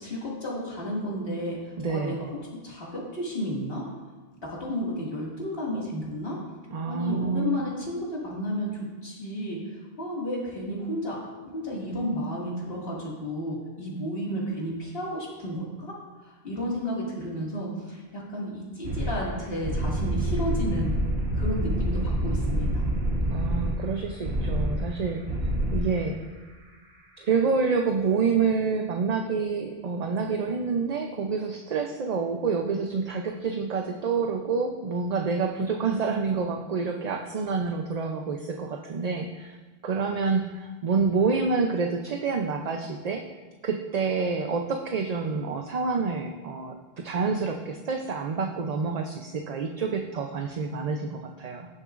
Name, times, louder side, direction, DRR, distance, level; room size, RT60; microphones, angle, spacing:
voice 1, 0.0-2.2 2.5-3.9 4.4-6.4 6.9-8.7 9.0-11.2 11.5-21.0 21.3-22.8, equal, 70° left, -4 dB, 2.4 m, -32 dB
voice 2, 1.8-2.3 6.7-7.6 23.3-25.2 25.7-26.2 27.2-39.6 39.8-43.2 43.6-51.7, right 5 dB, 45° right, 3 dB, 0.6 m, -28 dB
sound 1, 18.8-19.2 19.4-23.8 24.2-24.8 25.2-25.8, right 1 dB, 90° right, 1.5 m, -27 dB
17.5 x 6.8 x 2.5 m, 1.3 s
omnidirectional pair, 1.0 m